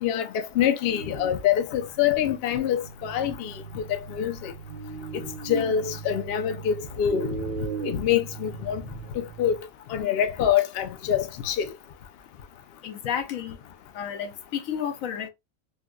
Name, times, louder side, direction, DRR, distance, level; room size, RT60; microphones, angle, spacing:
voice 1, 0.0-4.5 5.4-7.4 7.9-8.8 9.1-9.6 9.9-11.7, left 9 dB, 60° left, 0.6 m, -25 dB
sound 1, 0.9-9.6, right 4 dB, 60° right, 0.6 m, -38 dB
voice 2, 12.8-13.6 13.9-15.3, left 8 dB, 85° left, 1.1 m, -31 dB
4.3 x 2.2 x 2.3 m
omnidirectional pair, 1.4 m